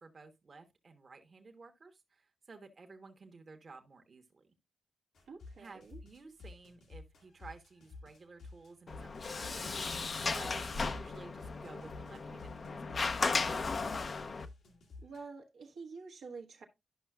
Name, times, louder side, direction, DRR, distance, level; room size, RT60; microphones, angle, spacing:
voice 1, 0.0-4.5 5.6-13.4, right 4 dB, 50° right, 1.2 m, -54 dB
sound 1, 5.2-15.2, left 3 dB, 85° left, 1.8 m, -51 dB
voice 2, 5.3-6.0 15.0-16.6, right 4 dB, 85° right, 1.3 m, -48 dB
Sliding door, 8.9-14.4, left 4 dB, 50° left, 0.6 m, -36 dB
11.5 x 5.5 x 2.3 m
cardioid pair, 55°, 0 cm